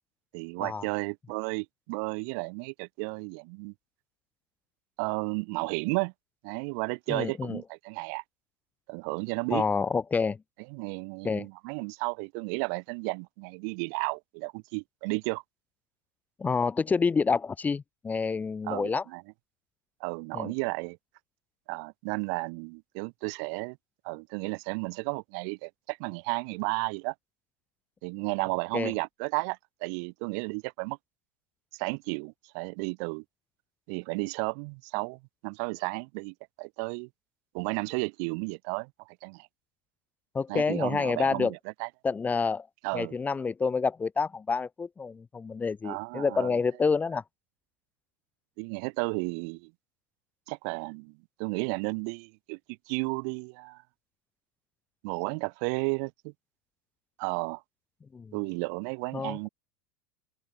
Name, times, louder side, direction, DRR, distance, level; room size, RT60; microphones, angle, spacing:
voice 1, 0.3-3.7 5.0-6.1 6.4-8.2 8.9-9.6 10.7-15.4 18.7-19.2 20.0-21.0 21.7-23.8 24.0-27.1 28.0-31.0 31.7-33.2 33.9-37.1 37.5-39.5 40.5-41.9 42.8-43.2 45.8-46.6 48.6-49.7 50.5-52.6 52.9-53.8 55.0-56.3 57.2-57.6 58.3-59.5, right 38 dB, 60° right, 0.5 m, -33 dB
voice 2, 7.1-7.6 9.5-10.4 11.2-11.5 16.4-19.0 20.3-20.5 28.7-28.9 40.3-41.5 42.0-42.7 42.9-47.2 58.1-58.3 59.1-59.5, left 5 dB, 15° left, 0.5 m, -28 dB
open air
supercardioid pair, 125°, 11 cm